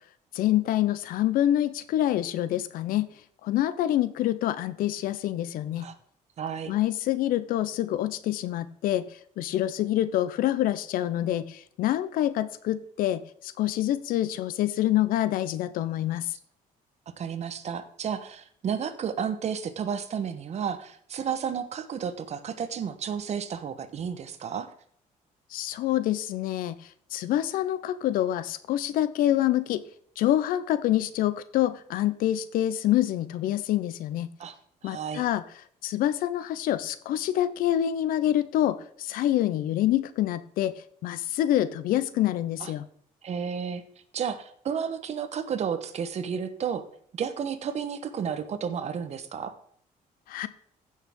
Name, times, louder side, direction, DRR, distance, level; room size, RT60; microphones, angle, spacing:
voice 1, 0.3-3.1 3.4-5.8 6.7-9.1 9.4-16.3 25.5-26.8 27.1-29.8 30.2-34.3 34.8-35.4 35.8-40.7 41.0-42.8 50.3-50.5, left 13 dB, 90° left, 15 dB, 0.7 m, -26 dB
voice 2, 6.4-6.7 17.1-24.7 34.4-34.6 34.8-35.2 42.6-42.7 43.2-43.8 44.1-46.8 47.1-49.5, right 7 dB, 50° right, 11 dB, 1.1 m, -32 dB
15.0 x 6.5 x 3.7 m, 0.62 s
cardioid pair, 120°, 14 cm